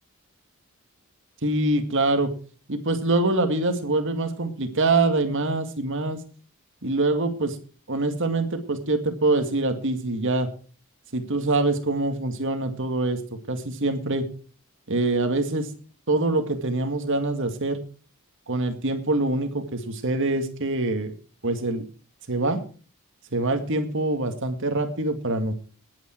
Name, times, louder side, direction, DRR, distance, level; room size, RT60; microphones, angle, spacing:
voice 1, 1.4-2.3 2.7-6.2 6.8-7.6 7.9-10.5 11.1-13.2 13.5-14.3 14.9-15.7 16.1-17.8 18.5-21.1 21.4-21.8 22.3-22.6 23.3-25.5, right 2 dB, 60° right, 7 dB, 2.1 m, -24 dB
19.0 x 8.8 x 4.5 m, 0.39 s
head